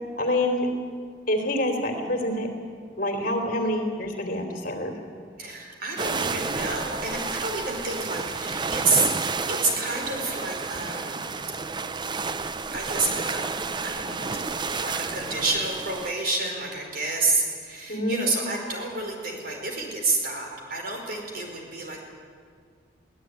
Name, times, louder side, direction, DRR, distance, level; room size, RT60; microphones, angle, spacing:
voice 1, 0.2-0.7 1.3-2.5 3.0-4.9 17.9-18.2, left 1 dB, 50° left, 4 dB, 3.4 m, -26 dB
voice 2, 5.4-9.1 9.5-11.3 12.7-13.6 13.8-22.0, right 3 dB, 55° right, 1 dB, 4.9 m, -29 dB
sound 1, 6.0-16.1, right 4 dB, 25° right, 0.6 m, -31 dB
23.0 x 17.0 x 9.5 m, 2.1 s
head